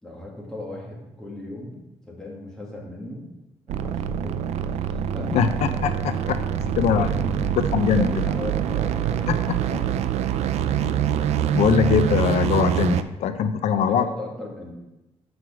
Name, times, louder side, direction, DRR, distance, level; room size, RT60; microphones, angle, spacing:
voice 1, 0.0-3.3 3.7-4.5 4.9-5.6 6.5-9.3 9.7-10.0 13.7-14.7, left 1 dB, 5° left, -3 dB, 1.8 m, -37 dB
sound 1, 3.7-13.0, right 9 dB, 75° right, 0.4 m, -25 dB
voice 2, 5.8-6.4 6.8-7.1 7.7-8.1 11.5-14.0, left 7 dB, 80° left, 10 dB, 0.4 m, -21 dB
6.3 x 4.7 x 6.0 m, 0.97 s
cardioid pair, 150°, 11 cm